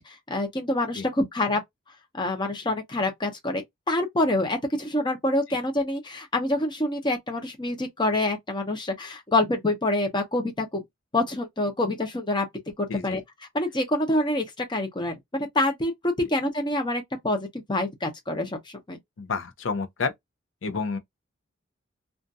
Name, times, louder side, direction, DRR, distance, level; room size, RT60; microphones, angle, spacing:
voice 1, 0.0-1.6 2.1-10.8 11.1-12.5 12.8-13.2 13.5-18.6 18.9-19.0, left 1 dB, 25° left, 0.7 m, -26 dB
voice 2, 19.2-20.1 20.6-21.0, left 4 dB, 75° left, 0.5 m, -29 dB
2.5 x 2.3 x 2.6 m
head